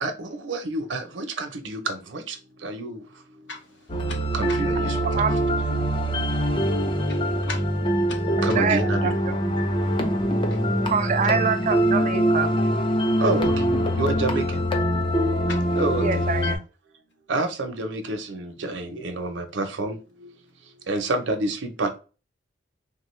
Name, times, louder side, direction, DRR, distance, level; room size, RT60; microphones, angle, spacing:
voice 1, 0.0-2.3 2.6-3.0 4.3-5.0 8.4-9.2 9.5-9.6 13.2-13.5 14.0-14.4 15.7-16.1 17.3-20.0 20.9-22.0, right 2 dB, 85° right, 0.7 m, -28 dB
voice 2, 3.5-4.3 7.1-7.8 8.1-8.2 10.5-10.6 15.5-15.8, left 3 dB, 70° left, 0.8 m, -39 dB
sound 1, 3.9-16.6, equal, 25° left, 0.5 m, -23 dB
voice 3, 4.8-5.4 5.9-6.1 8.4-9.4 10.8-12.5 16.0-16.6, right 6 dB, 40° right, 0.3 m, -26 dB
3.4 x 2.2 x 3.1 m
head